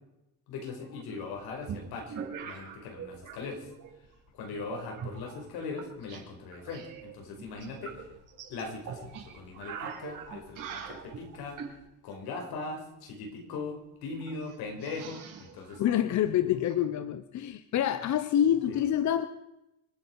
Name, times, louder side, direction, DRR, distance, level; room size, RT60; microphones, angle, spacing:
voice 1, 0.5-3.7 4.3-8.1 8.5-11.6 12.0-15.8 18.7-18.8, left 4 dB, 85° left, 2 dB, 5.1 m, -40 dB
sound 1, 1.2-3.4 3.6-4.1 4.7-6.2 6.5-11.8 13.5-13.6 13.7-13.8 14.2-16.7, right 7 dB, 60° right, 5.1 m, -43 dB
voice 2, 15.8-19.3, left 10 dB, 50° left, 12 dB, 0.9 m, -27 dB
26.5 x 10.0 x 4.7 m, 0.91 s
cardioid pair, 140°, 36 cm